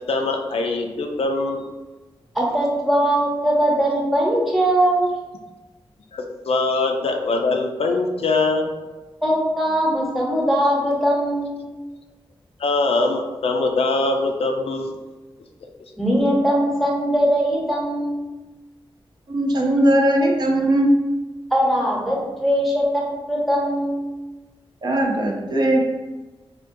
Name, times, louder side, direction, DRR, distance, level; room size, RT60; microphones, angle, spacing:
voice 1, 0.1-1.6 6.1-8.7 12.6-14.9, left 3 dB, 80° left, 3 dB, 0.4 m, -22 dB
voice 2, 2.3-5.1 9.2-11.6 16.0-18.3 21.5-24.1, equal, ahead, -4 dB, 0.8 m, -20 dB
voice 3, 19.3-20.9 24.8-25.8, right 1 dB, 45° right, 0 dB, 0.5 m, -19 dB
3.5 x 2.2 x 2.5 m, 1.2 s
wide cardioid pair, 90°, 10 cm